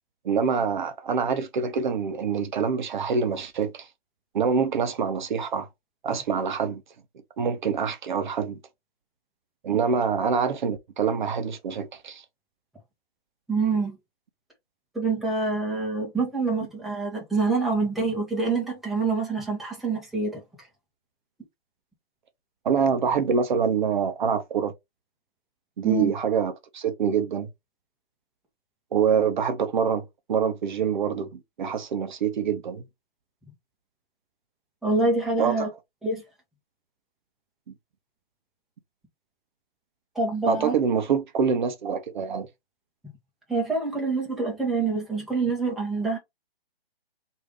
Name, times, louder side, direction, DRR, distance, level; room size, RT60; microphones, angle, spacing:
voice 1, 0.2-3.9 4.3-5.7 6.0-6.8 7.4-8.6 9.6-12.2 22.6-24.7 25.8-27.5 28.9-32.8 35.4-35.7 40.5-42.5, right 6 dB, 50° right, 0.6 m, -25 dB
voice 2, 13.5-14.0 14.9-20.4 25.8-26.1 34.8-35.7 36.0-36.2 40.1-40.7 43.5-46.2, right 3 dB, ahead, 0.7 m, -26 dB
3.2 x 2.6 x 2.9 m
figure-of-eight pair, 135°, 30 cm